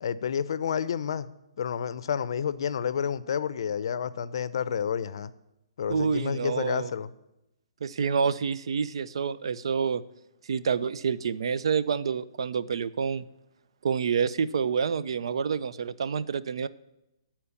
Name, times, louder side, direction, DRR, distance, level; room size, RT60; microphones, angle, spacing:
voice 1, 0.0-1.3 1.6-5.3 5.8-7.1, left 7 dB, 60° left, 0.5 m, -30 dB
voice 2, 5.9-6.9 7.8-10.0 10.5-13.3 13.8-16.7, right 6 dB, 70° right, 0.4 m, -28 dB
10.0 x 4.4 x 7.0 m
hypercardioid pair, 150°, 3 cm